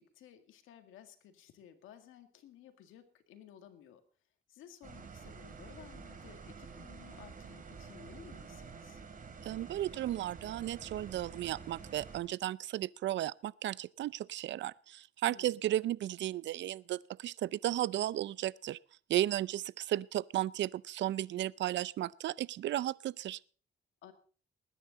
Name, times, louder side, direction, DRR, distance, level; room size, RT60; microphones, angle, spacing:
voice 1, 0.0-4.0 4.5-9.0 15.2-15.6 24.0-24.1, left 10 dB, 85° left, 2.0 m, -56 dB
sound 1, 4.8-12.2, right 5 dB, 45° right, 2.7 m, -49 dB
voice 2, 9.4-18.8 19.1-23.4, right 13 dB, 65° right, 0.5 m, -34 dB
20.0 x 10.5 x 4.0 m
cardioid pair, 90°, 20 cm